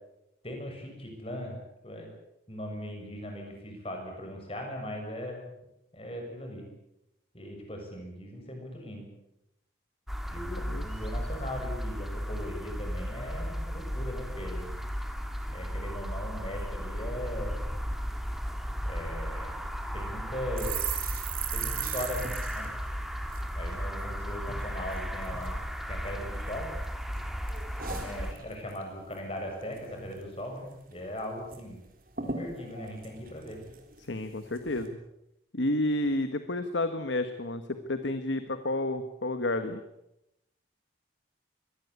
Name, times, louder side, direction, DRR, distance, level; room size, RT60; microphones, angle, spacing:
voice 1, 0.4-2.1 2.5-5.5 5.9-6.7 7.3-9.1 10.3-14.7 15.5-17.6 18.8-19.5 19.9-20.9 21.5-22.2 22.5-22.7 23.5-26.7 27.9-31.8 32.2-33.6, left 1 dB, 30° left, 2 dB, 7.0 m, -39 dB
sound 1, 10.1-28.3, equal, ahead, 2.1 m, -35 dB
sound 2, 20.6-24.1 24.4-24.6 24.9-25.5 26.0-26.8 27.1-28.8 29.1-29.3 29.6-30.2 30.5-30.6 30.9-31.6 31.9-32.0 32.2-34.0 34.5-34.9, right 7 dB, 50° right, 3.8 m, -38 dB
voice 2, 34.0-35.0 35.5-39.8, left 1 dB, 75° left, 9 dB, 1.5 m, -30 dB
24.0 x 18.0 x 8.5 m, 0.86 s
head